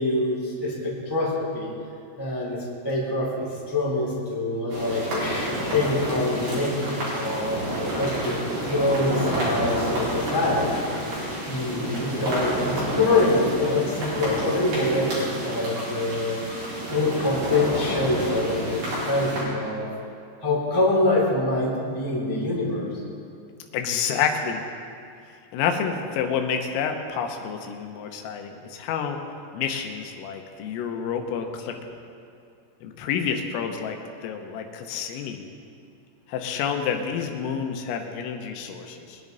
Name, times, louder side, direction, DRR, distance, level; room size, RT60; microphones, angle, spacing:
voice 1, 0.0-1.7 2.2-2.6 2.8-8.4 8.6-10.7 11.4-16.4 16.9-19.9 20.4-22.9, left 2 dB, 5° left, -7 dB, 2.8 m, -25 dB
sound 1, 4.7-19.4, right 1 dB, 50° right, 5.7 m, -29 dB
voice 2, 23.7-24.6 25.5-29.2 29.5-32.0 32.8-35.5 36.3-39.2, left 7 dB, 90° left, 4 dB, 3.6 m, -29 dB
22.5 x 10.5 x 4.0 m, 2.4 s
omnidirectional pair, 5.8 m